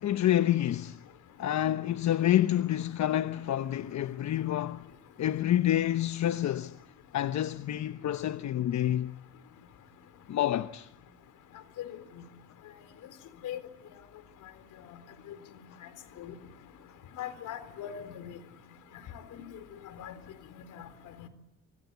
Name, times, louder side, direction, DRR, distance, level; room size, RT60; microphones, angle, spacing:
voice 1, 0.0-1.0 1.4-4.8 5.2-6.8 7.1-9.1 10.3-10.9, left 12 dB, 65° left, 1.1 m, -28 dB
voice 2, 17.2-18.4 19.3-19.4 19.9-20.1 20.7-20.9 21.2-21.3, left 10 dB, 85° left, 4.0 m, -39 dB
28.0 x 25.5 x 8.2 m
cardioid pair, 90°, 30 cm